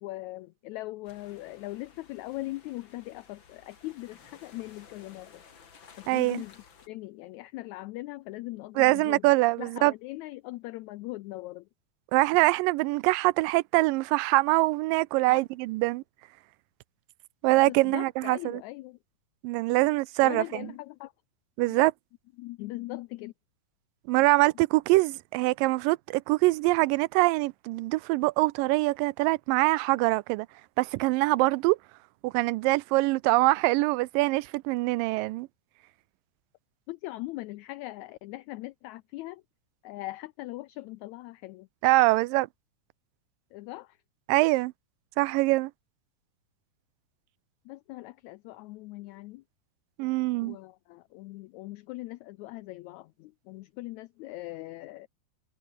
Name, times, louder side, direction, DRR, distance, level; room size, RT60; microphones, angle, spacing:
voice 1, 0.0-5.4 6.0-9.3 9.6-11.7 15.3-15.4 17.7-19.0 20.2-21.1 21.7-21.8 22.4-23.3 36.9-39.4 39.8-41.7 43.5-44.0 47.6-49.4 50.4-55.1, left 18 dB, 85° left, 1.6 m, -40 dB
sound 1, 1.0-6.9, left 6 dB, 40° left, 2.7 m, -55 dB
voice 2, 6.1-6.4 8.8-9.9 12.1-16.0 17.4-18.6 19.4-20.7 21.6-21.9 24.1-30.5 30.8-31.8 32.2-35.5 41.8-42.5 44.3-44.7 45.2-45.7 50.0-50.6, right 21 dB, 90° right, 2.3 m, -24 dB
omnidirectional pair, 3.8 m